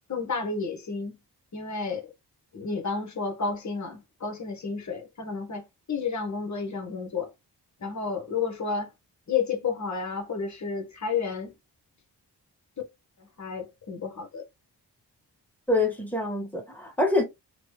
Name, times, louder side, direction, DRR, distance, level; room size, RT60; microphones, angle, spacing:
voice 1, 0.1-1.2 1.5-2.1 2.5-7.3 7.8-8.9 9.3-11.5 13.4-14.4, left 5 dB, 40° left, 1.2 m, -31 dB
voice 2, 15.7-17.2, left 2 dB, 5° left, 1.7 m, -25 dB
2.9 x 2.3 x 3.1 m
cardioid pair, 45°, 43 cm